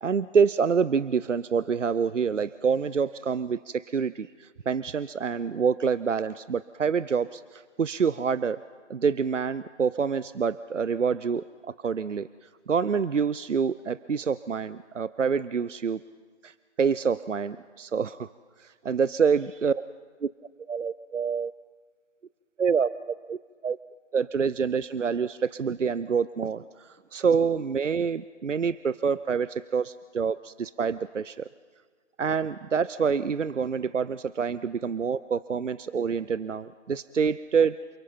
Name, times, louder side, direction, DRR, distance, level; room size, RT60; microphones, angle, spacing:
voice 1, 0.0-8.6 8.9-11.5 11.8-12.3 12.7-16.0 16.4-18.3 18.6-19.8 20.2-20.3 20.7-21.5 22.6-23.4 23.6-23.8 24.1-31.5 32.2-37.8, right 6 dB, 85° right, 17 dB, 0.7 m, -27 dB
28.5 x 23.5 x 4.4 m, 1.5 s
figure-of-eight pair, 150°, 36 cm